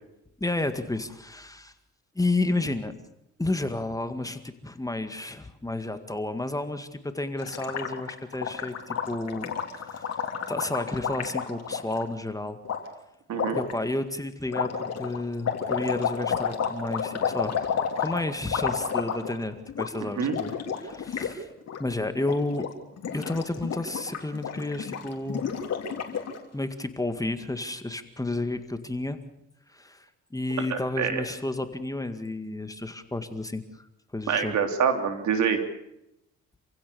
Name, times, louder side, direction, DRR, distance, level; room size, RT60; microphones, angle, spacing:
voice 1, 0.4-1.7 2.2-2.9 3.4-10.1 10.5-12.6 13.5-20.5 20.8-21.5 21.8-22.7 23.1-25.5 26.5-29.2 29.7-30.1 30.3-33.9 34.1-34.6, left 2 dB, 10° left, 8 dB, 1.9 m, -31 dB
Gurgling, 7.4-12.0 12.7-12.8 13.3-13.7 14.5-19.4 19.7-19.9 20.2-21.3 21.6-21.8 22.2-22.7 23.0-26.4, left 7 dB, 55° left, 3.4 m, -31 dB
voice 2, 20.0-20.3 30.7-31.2 34.3-35.6, right 7 dB, 70° right, 6 dB, 3.4 m, -26 dB
27.5 x 16.0 x 7.0 m, 0.86 s
cardioid pair, 90°, 30 cm